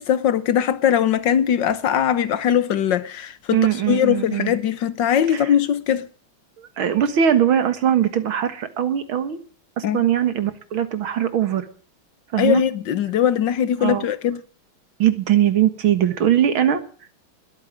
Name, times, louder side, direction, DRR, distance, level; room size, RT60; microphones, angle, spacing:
voice 1, 0.0-6.1 9.8-10.0 12.4-14.4, left 9 dB, 65° left, 1.6 m, -20 dB
voice 2, 3.5-4.5 5.3-5.5 6.6-9.4 9.8-11.7 12.3-12.6 13.8-14.1 15.0-16.8, right 10 dB, 80° right, 2.4 m, -20 dB
21.0 x 8.9 x 7.5 m
omnidirectional pair, 2.2 m